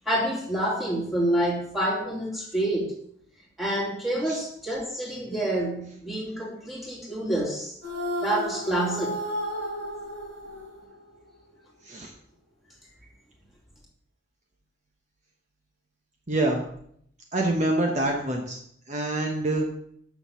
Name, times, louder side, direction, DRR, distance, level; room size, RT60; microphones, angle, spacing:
voice 1, 0.1-2.9 3.6-7.8 8.2-9.2, right 1 dB, ahead, -4 dB, 2.6 m, -28 dB
sound 1, 7.8-11.2, left 1 dB, 70° right, 3.7 m, -33 dB
voice 2, 16.3-16.6 17.3-18.6 18.9-19.7, right 2 dB, 40° right, 1 dB, 1.1 m, -26 dB
7.0 x 6.2 x 6.9 m, 0.69 s
head